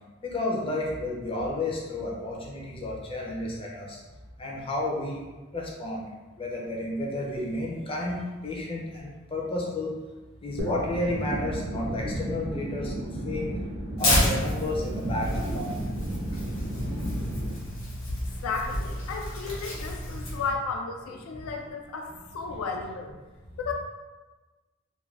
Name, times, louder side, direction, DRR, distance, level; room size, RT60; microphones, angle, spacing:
voice 1, 0.2-4.0 4.4-5.2 5.5-6.1 6.4-9.9 10.4-12.9 13.2-13.5 14.0-15.8 22.5-22.6, left 1 dB, 25° left, -3 dB, 0.4 m, -31 dB
sound 1, 10.6-17.5, right 1 dB, 70° right, 0.6 m, -33 dB
Tearing, 14.0-20.5, left 1 dB, 65° left, 1.1 m, -30 dB
voice 2, 18.4-23.1 23.6-23.7, left 4 dB, 90° left, 3 dB, 0.3 m, -33 dB
2.3 x 2.2 x 3.1 m, 1.2 s
head